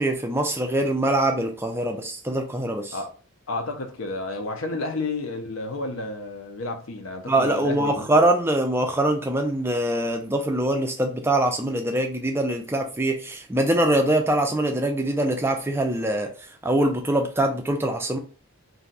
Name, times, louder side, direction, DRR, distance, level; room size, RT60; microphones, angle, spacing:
voice 1, 0.0-3.0 7.3-16.3 16.6-18.2, right 1 dB, 10° right, 0.4 m, -23 dB
voice 2, 3.5-8.1, left 2 dB, 65° left, 0.6 m, -31 dB
2.6 x 2.2 x 3.9 m
head